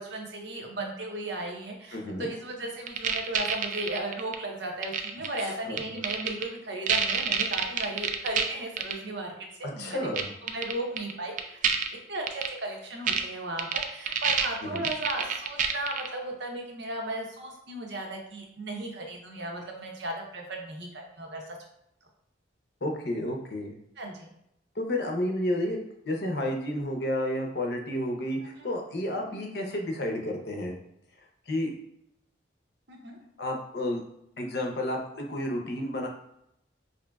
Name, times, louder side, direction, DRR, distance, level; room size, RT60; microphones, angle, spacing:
voice 1, 0.0-9.3 9.6-10.1 10.4-11.6 12.1-21.6 24.0-24.3 28.6-28.7 32.9-33.2, right 1 dB, 70° right, 1 dB, 0.8 m, -36 dB
voice 2, 1.9-2.3 5.4-5.8 9.8-10.3 14.6-14.9 22.8-23.8 24.7-25.8 26.1-30.7 31.5-31.7 33.4-34.0 34.4-36.1, left 1 dB, 60° left, 2 dB, 0.7 m, -31 dB
sound 1, 2.9-4.4 4.8-5.4 5.8-6.4 6.9-8.4 8.8-8.9 10.2-10.3 10.5-11.1 11.4-11.9 12.3-12.5 13.1-13.2 13.6-16.1, right 7 dB, 45° right, 0.3 m, -27 dB
5.0 x 2.7 x 2.3 m, 0.78 s
head